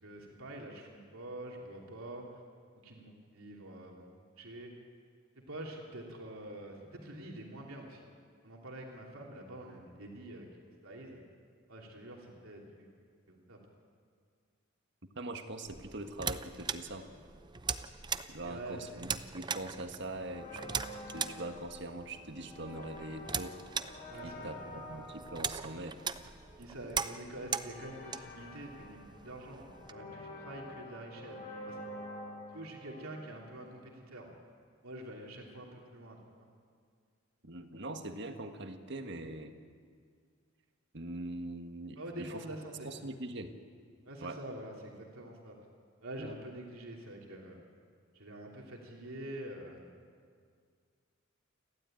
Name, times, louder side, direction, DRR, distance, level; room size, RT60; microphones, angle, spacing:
voice 1, 0.0-2.2 2.8-4.1 4.4-4.7 5.5-8.0 8.4-10.5 10.8-11.2 11.7-12.9 13.3-13.6 18.4-19.0 24.1-24.6 26.6-31.8 32.5-34.3 34.8-36.5 42.0-42.9 44.0-45.6 46.0-47.6 48.1-49.8, right 1 dB, 80° right, -1 dB, 3.0 m, -46 dB
voice 2, 15.1-17.1 18.3-20.6 21.1-23.6 24.2-26.0 37.4-39.5 40.9-42.4 42.8-43.6 44.2-44.4 46.2-46.4, right 2 dB, 55° right, 6 dB, 1.5 m, -42 dB
sound 1, 15.7-29.9, right 6 dB, 20° right, 0.5 m, -41 dB
sound 2, 20.1-33.9, left 1 dB, 35° left, 5.3 m, -49 dB
29.0 x 12.5 x 9.0 m, 2.1 s
head